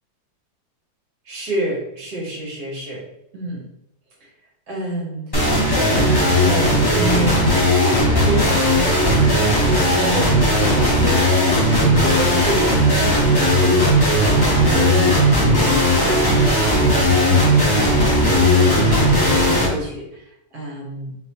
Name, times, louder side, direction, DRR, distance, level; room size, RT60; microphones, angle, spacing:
voice 1, 1.2-3.0 3.3-3.7 4.2-4.3 4.7-5.3 5.7-8.8 9.2-13.8 14.3-17.5 17.8-21.1, right 1 dB, 55° right, -2 dB, 1.6 m, -29 dB
sound 1, 5.3-19.7, equal, 40° left, 0.3 m, -16 dB
4.0 x 3.6 x 2.9 m, 0.82 s
omnidirectional pair, 2.0 m